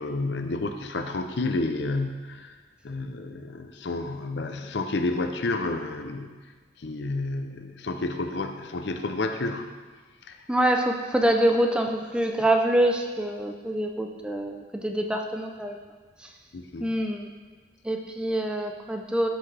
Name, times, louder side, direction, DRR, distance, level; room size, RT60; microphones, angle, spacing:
voice 1, 0.0-2.6 2.8-6.3 6.8-9.6 10.3-10.4 16.5-16.9, left 2 dB, 70° left, 6 dB, 0.6 m, -30 dB
voice 2, 10.5-15.8 16.8-17.3 17.8-19.3, right 1 dB, 5° right, 3 dB, 0.5 m, -25 dB
12.0 x 6.1 x 3.4 m, 1.4 s
head